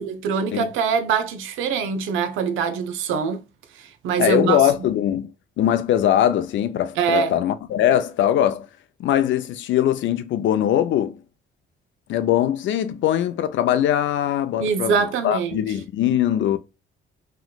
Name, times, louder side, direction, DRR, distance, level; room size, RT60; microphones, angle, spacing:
voice 1, 0.0-3.4 3.7-4.9 7.0-7.3 14.6-15.6, right 6 dB, 85° right, 0.6 m, -24 dB
voice 2, 4.2-5.3 5.6-8.7 9.0-11.2 12.1-16.6, left 11 dB, 70° left, 0.5 m, -21 dB
3.1 x 3.0 x 2.2 m
cardioid pair, 90°, 20 cm